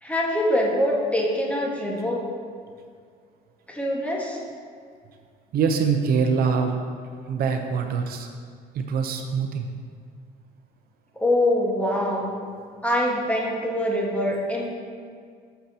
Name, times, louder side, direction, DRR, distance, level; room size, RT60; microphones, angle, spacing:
voice 1, 0.0-2.2 3.7-4.4 11.1-12.4 12.8-14.7, left 1 dB, 10° left, -2 dB, 1.6 m, -24 dB
voice 2, 5.5-6.7 7.3-8.3 8.7-9.7, right 6 dB, 65° right, 5 dB, 0.7 m, -24 dB
11.5 x 6.8 x 2.9 m, 2.1 s
cardioid pair, 110°, 17 cm